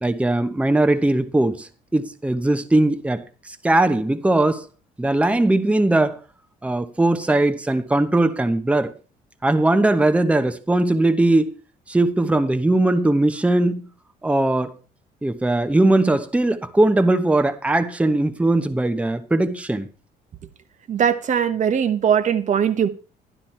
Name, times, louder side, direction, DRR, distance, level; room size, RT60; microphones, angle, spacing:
voice 1, 0.0-4.7 5.0-6.2 6.6-8.9 9.4-11.5 11.9-13.8 14.2-14.7 15.2-19.9, right 2 dB, 5° right, 1.0 m, -19 dB
voice 2, 20.9-22.9, right 8 dB, 45° right, 1.2 m, -20 dB
12.0 x 11.5 x 4.4 m
cardioid pair, 110°, 17 cm